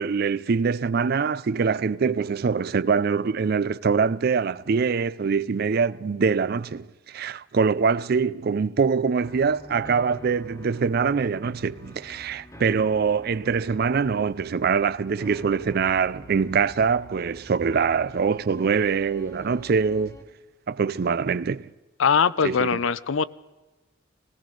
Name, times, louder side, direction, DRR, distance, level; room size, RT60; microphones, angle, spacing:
voice 1, 0.0-20.2 20.7-21.7 22.4-22.8, right 5 dB, 50° right, 0.4 m, -24 dB
sound 1, 9.2-20.2, left 1 dB, 15° left, 1.3 m, -46 dB
voice 2, 22.0-23.3, left 6 dB, 75° left, 0.5 m, -21 dB
20.0 x 18.0 x 3.9 m
head